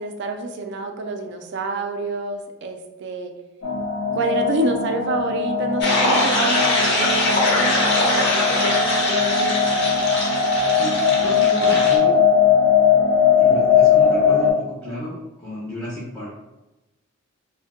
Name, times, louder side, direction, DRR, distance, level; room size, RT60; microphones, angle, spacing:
voice 1, 0.0-3.3 4.1-10.0, right 2 dB, 55° right, 5 dB, 0.4 m, -28 dB
sound 1, 3.6-14.5, left 6 dB, 80° left, 0.6 m, -19 dB
sound 2, 5.8-12.0, left 1 dB, 55° left, 0.8 m, -22 dB
voice 2, 10.8-12.2 13.4-16.3, equal, 15° left, -7 dB, 0.6 m, -32 dB
2.7 x 2.1 x 3.5 m, 1.0 s
head